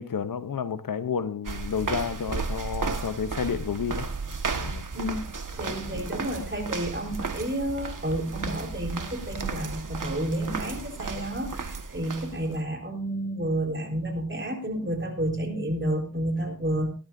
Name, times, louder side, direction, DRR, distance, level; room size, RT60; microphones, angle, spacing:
voice 1, 0.0-4.1 4.6-4.9 5.6-6.1, left 7 dB, 75° left, 0.8 m, -31 dB
sound 1, 1.5-12.6, right 4 dB, 65° right, 1.5 m, -34 dB
voice 2, 4.9-16.9, right 1 dB, 35° right, 3.8 m, -30 dB
18.5 x 12.0 x 2.6 m
wide cardioid pair, 55°, 33 cm